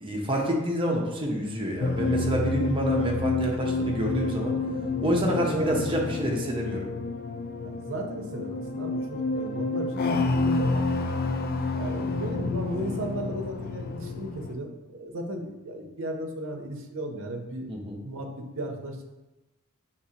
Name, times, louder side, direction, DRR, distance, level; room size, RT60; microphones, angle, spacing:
voice 1, 0.0-4.6 5.0-6.9 17.7-18.0, equal, 25° right, -1 dB, 0.7 m, -28 dB
sound 1, 1.8-14.5, left 3 dB, 40° left, 0.3 m, -29 dB
voice 2, 5.3-5.8 7.6-11.2 11.7-17.7 18.0-19.1, right 1 dB, 60° right, 3 dB, 0.7 m, -36 dB
6.4 x 2.9 x 2.8 m, 1.0 s
head